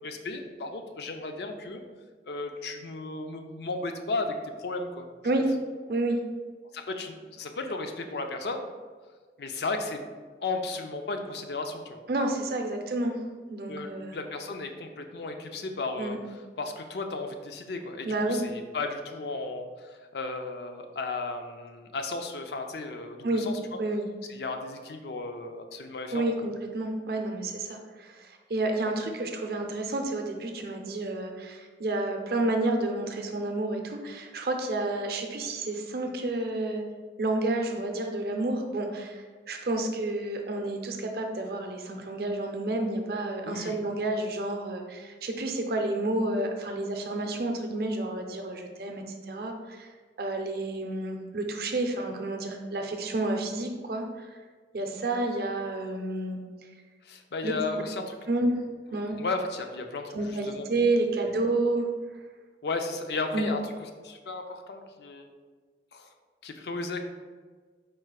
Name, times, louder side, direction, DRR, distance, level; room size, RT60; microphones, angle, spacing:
voice 1, 0.0-1.8 2.3-4.3 4.6-5.1 5.4-5.5 6.7-8.6 9.4-10.0 10.4-12.0 13.7-13.9 14.1-16.2 16.6-23.6 24.3-26.3 43.5-43.8 57.0-58.1 59.2-60.6 61.1-61.3 62.6-63.6 64.0-65.3 65.9-66.1 66.4-67.0, left 3 dB, 70° left, 5 dB, 0.5 m, -34 dB
voice 2, 12.1-13.2 13.5-14.2 16.0-16.2 18.0-18.4 23.2-23.5 23.8-24.1 26.1-36.8 37.2-49.9 50.2-54.4 54.7-56.4 57.4-57.8 58.3-58.6 58.9-59.2 60.1-61.9 63.3-63.5, right 2 dB, 60° right, 3 dB, 0.5 m, -30 dB
4.5 x 2.4 x 4.7 m, 1.5 s
head